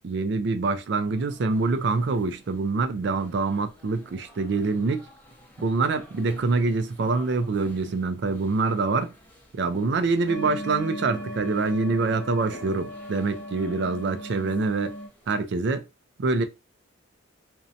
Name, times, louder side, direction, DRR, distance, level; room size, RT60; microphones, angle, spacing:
voice 1, 0.0-5.0 5.6-9.1 9.5-14.9 15.3-15.8 16.2-16.4, right 3 dB, 55° right, 0.4 m, -25 dB
sound 1, 0.8-15.5, equal, 10° left, 0.5 m, -50 dB
sound 2, 10.3-15.1, equal, 60° left, 0.7 m, -37 dB
2.6 x 2.1 x 2.6 m
head